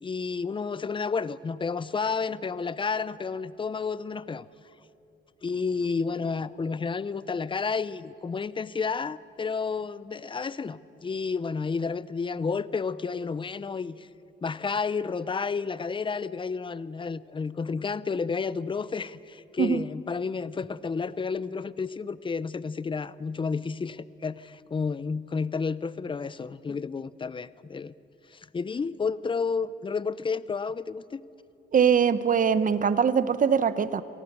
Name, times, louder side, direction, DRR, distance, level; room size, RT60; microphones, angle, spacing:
voice 1, 0.0-4.5 5.4-14.1 14.4-27.9 28.3-31.2, left 5 dB, 25° left, 17 dB, 0.7 m, -31 dB
voice 2, 31.7-34.0, right 7 dB, 40° right, 14 dB, 1.0 m, -22 dB
28.0 x 18.5 x 6.8 m, 2.8 s
cardioid pair, 90°, 20 cm